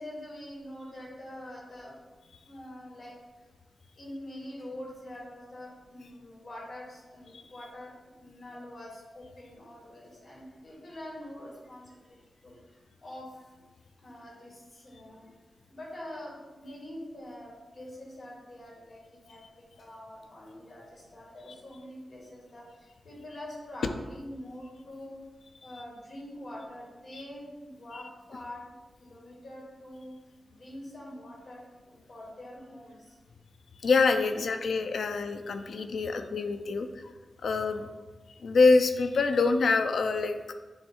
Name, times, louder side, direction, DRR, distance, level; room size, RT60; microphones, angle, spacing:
voice 1, 0.0-2.0 2.5-3.2 3.9-7.9 8.2-13.5 14.0-15.3 15.7-19.4 19.8-25.2 25.6-28.7 29.0-30.1 30.5-33.2, left 1 dB, 50° left, -4 dB, 2.3 m, -45 dB
voice 2, 33.8-37.1 37.4-37.9 38.4-40.4, left 4 dB, 80° left, 7 dB, 0.5 m, -25 dB
9.4 x 3.2 x 4.5 m, 1.2 s
wide cardioid pair, 155°, 0 cm